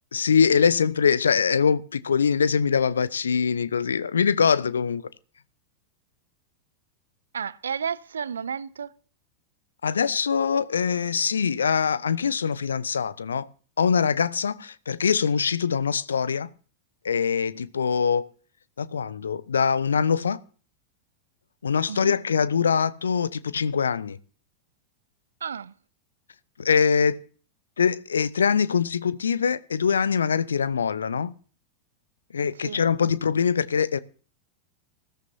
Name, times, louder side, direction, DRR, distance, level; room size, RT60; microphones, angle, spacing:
voice 1, 0.1-5.0 9.8-13.5 13.8-16.5 17.0-18.2 18.8-20.4 21.6-24.2 26.6-27.2 27.8-31.3 32.3-34.0, left 6 dB, 70° left, 0.7 m, -23 dB
voice 2, 7.3-8.9 21.9-22.2 25.4-25.7 32.6-32.8, right 7 dB, 70° right, 0.6 m, -32 dB
20.0 x 14.0 x 2.8 m
figure-of-eight pair, 90°, 0 cm